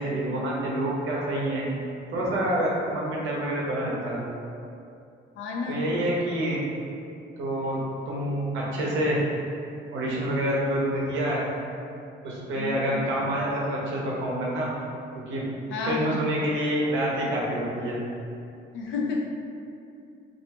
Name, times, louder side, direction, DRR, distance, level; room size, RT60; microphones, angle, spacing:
voice 1, 0.0-1.7 2.1-4.2 5.7-6.6 7.4-7.8 8.1-9.2 9.9-11.4 12.2-14.7 15.3-15.4 15.9-18.0, right 1 dB, 85° right, -4 dB, 0.6 m, -27 dB
voice 2, 5.4-5.8 12.6-12.9 15.7-16.2 18.7-19.2, left 4 dB, 85° left, -1 dB, 0.4 m, -31 dB
2.4 x 2.2 x 2.8 m, 2.5 s
cardioid pair, 90°, 20 cm